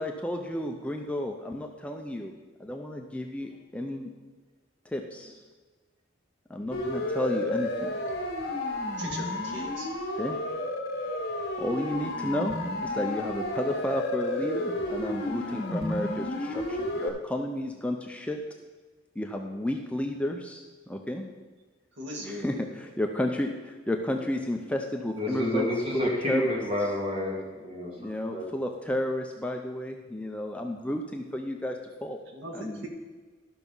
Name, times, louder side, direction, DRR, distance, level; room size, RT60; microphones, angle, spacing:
voice 1, 0.0-2.3 2.6-4.1 4.9-5.3 6.5-7.9 10.2-10.4 11.6-12.6 12.8-18.4 19.2-21.3 22.3-25.7 25.9-26.6 28.0-32.2 32.5-32.9, left 1 dB, 5° left, 2 dB, 0.6 m, -32 dB
Siren, 6.7-17.1, left 1 dB, 55° left, 1.7 m, -32 dB
voice 2, 9.0-9.9 22.0-22.7 32.3-32.9, right 1 dB, 65° right, -1 dB, 2.0 m, -39 dB
voice 3, 25.1-28.4, left 1 dB, 30° right, -3 dB, 2.5 m, -29 dB
12.5 x 5.9 x 5.4 m, 1.3 s
head